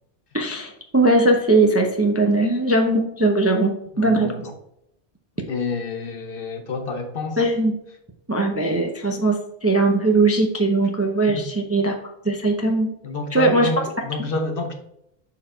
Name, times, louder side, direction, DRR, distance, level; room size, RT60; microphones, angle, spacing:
voice 1, 0.3-3.7 4.0-4.3 7.4-7.7 8.3-11.9 12.2-12.9 13.3-13.7 14.2-14.3, right 2 dB, 15° right, 3 dB, 0.5 m, -19 dB
voice 2, 3.9-4.6 5.5-7.4 11.3-11.5 13.0-14.7, left 3 dB, 55° left, 4 dB, 1.1 m, -28 dB
6.6 x 4.0 x 4.4 m, 0.78 s
omnidirectional pair, 1.2 m